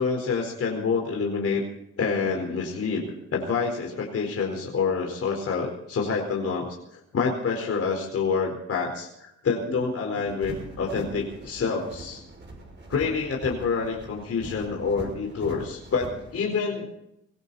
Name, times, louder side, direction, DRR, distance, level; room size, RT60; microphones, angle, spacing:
voice 1, 0.0-1.6 2.0-3.1 3.3-6.8 7.1-12.2 12.9-16.9, left 5 dB, 50° left, 1 dB, 4.4 m, -27 dB
sound 1, 10.3-16.4, right 1 dB, 35° right, 6.4 m, -42 dB
21.0 x 16.5 x 4.2 m, 0.81 s
cardioid pair, 90°, 30 cm